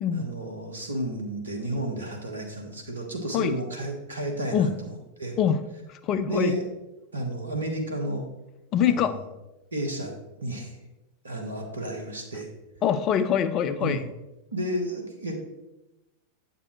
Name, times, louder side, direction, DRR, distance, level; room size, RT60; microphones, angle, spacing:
voice 1, 0.1-5.4 6.3-6.6 7.1-8.2 8.8-9.2 9.7-10.1 10.4-10.8 11.2-12.5 13.8-14.0 14.5-15.4, right 1 dB, 75° right, 2 dB, 1.4 m, -32 dB
voice 2, 5.9-6.5 8.7-9.2 12.8-14.0, left 8 dB, 35° left, 12 dB, 0.5 m, -24 dB
8.4 x 6.7 x 3.1 m, 1.0 s
figure-of-eight pair, 90°, 0 cm